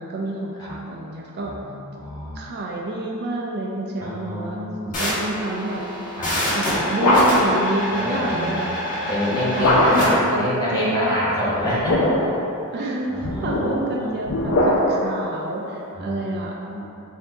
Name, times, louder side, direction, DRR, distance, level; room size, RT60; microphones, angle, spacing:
voice 1, 0.0-1.5 2.4-4.7 5.0-5.8 6.5-8.9 9.6-11.2 12.7-16.6, right 2 dB, 50° right, -2 dB, 0.4 m, -28 dB
voice 2, 1.4-2.4 4.0-5.0 6.2-6.3 7.9-8.6 9.1-12.1 13.1-14.1 15.9-16.2 16.7-16.9, left 1 dB, 20° left, -10 dB, 1.2 m, -27 dB
sound 1, 4.9-10.1, left 1 dB, 35° left, 1.4 m, -26 dB
sound 2, 6.4-7.6 9.6-10.2 11.6-12.4 13.2-15.1, left 1 dB, 85° left, 0.6 m, -20 dB
4.4 x 2.7 x 3.9 m, 2.8 s
head